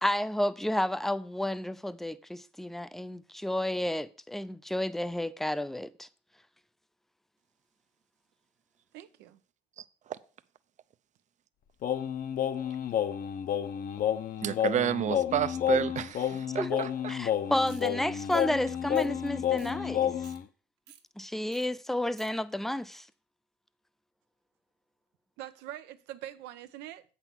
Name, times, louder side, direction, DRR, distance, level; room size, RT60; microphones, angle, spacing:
voice 1, 0.0-6.1 16.4-16.8 17.1-20.1 21.2-23.1, left 1 dB, ahead, 0.5 m, -31 dB
voice 2, 8.9-9.4 25.4-27.0, right 12 dB, 90° right, 0.8 m, -43 dB
Singing, 11.8-20.4, left 10 dB, 55° left, 0.8 m, -30 dB
voice 3, 14.4-17.1, right 9 dB, 45° right, 0.6 m, -30 dB
sound 1, 17.6-17.9 18.3-18.5 18.9-19.3 19.6-19.7 20.1-20.4 20.9-21.0 21.5-21.7 21.9-22.3, right 9 dB, 75° right, 1.4 m, -54 dB
8.0 x 5.9 x 6.0 m
cardioid pair, 110°, 17 cm